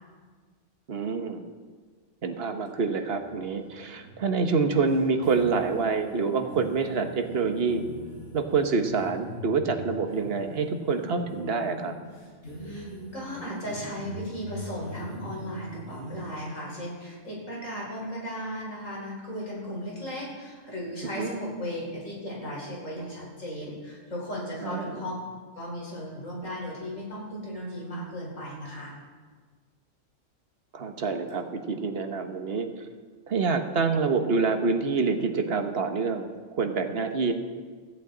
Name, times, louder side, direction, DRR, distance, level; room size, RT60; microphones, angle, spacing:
voice 1, 0.9-1.4 2.2-7.8 8.3-11.9 21.2-21.3 24.6-24.9 30.7-32.7 33.3-37.3, right 4 dB, 50° right, 5 dB, 1.4 m, -27 dB
sound 1, 3.1-16.4, right 1 dB, 60° left, 6.0 m, -42 dB
voice 2, 13.1-25.1 25.6-28.9, equal, 80° left, -4 dB, 4.8 m, -36 dB
17.0 x 15.0 x 4.0 m, 1.5 s
omnidirectional pair, 1.3 m